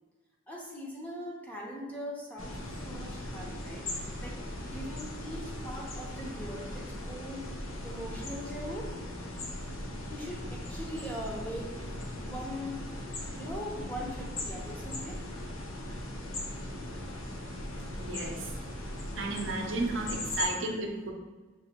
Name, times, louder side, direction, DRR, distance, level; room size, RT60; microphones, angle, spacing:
voice 1, 0.5-7.5 7.8-8.9 10.1-12.9 13.4-15.2, equal, 10° left, -3 dB, 0.6 m, -41 dB
sound 1, 2.4-20.5, left 1 dB, 85° left, 0.7 m, -39 dB
voice 2, 18.0-18.5 19.2-21.1, right 2 dB, 65° right, 1 dB, 0.6 m, -33 dB
5.9 x 2.6 x 2.8 m, 1.3 s
head